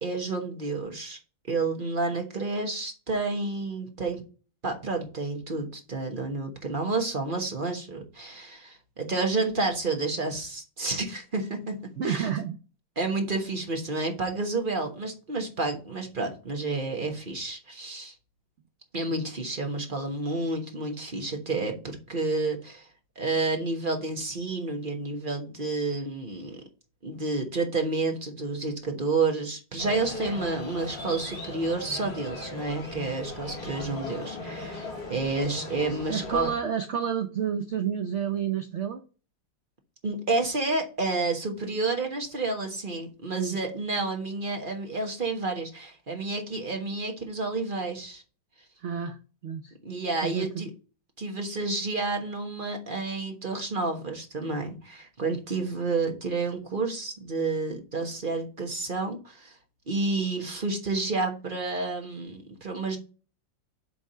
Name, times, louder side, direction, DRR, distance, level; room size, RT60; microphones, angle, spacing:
voice 1, 0.0-1.2 1.5-4.2 4.6-11.7 12.0-12.3 13.0-18.1 18.9-22.9 23.2-26.6 27.0-34.8 35.1-36.5 40.0-48.2 49.8-50.7 51.2-59.6 59.9-63.0, right 3 dB, 30° right, 3 dB, 1.1 m, -30 dB
voice 2, 12.0-12.6 36.1-39.0 43.4-43.6 48.8-49.2 49.4-49.7 50.2-50.7, right 8 dB, 65° right, 7 dB, 0.7 m, -30 dB
sound 1, 29.8-36.5, left 2 dB, 75° left, 3.4 m, -38 dB
8.4 x 3.5 x 5.5 m, 0.36 s
omnidirectional pair, 2.1 m